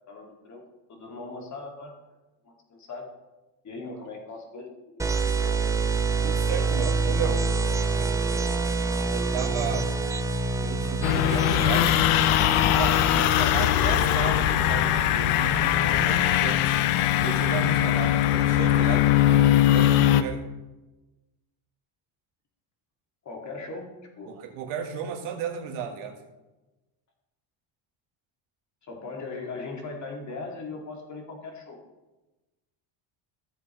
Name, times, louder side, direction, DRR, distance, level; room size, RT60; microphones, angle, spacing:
voice 1, 0.1-0.6 0.9-1.9 2.4-3.1 3.6-5.8 10.8-10.9 23.2-24.3 28.8-31.8, left 3 dB, 35° left, 1 dB, 1.9 m, -39 dB
sound 1, 5.0-14.7, right 3 dB, 5° right, 0.5 m, -27 dB
voice 2, 6.2-7.4 8.0-8.1 9.1-10.0 10.6-11.9 12.5-16.8 17.2-19.1 19.7-20.5 24.3-26.2, right 7 dB, 85° right, 2 dB, 1.8 m, -34 dB
sound 2, 11.0-20.2, left 12 dB, 80° left, 0.7 m, -21 dB
15.0 x 7.7 x 3.0 m, 1.1 s
cardioid pair, 130°, 50 cm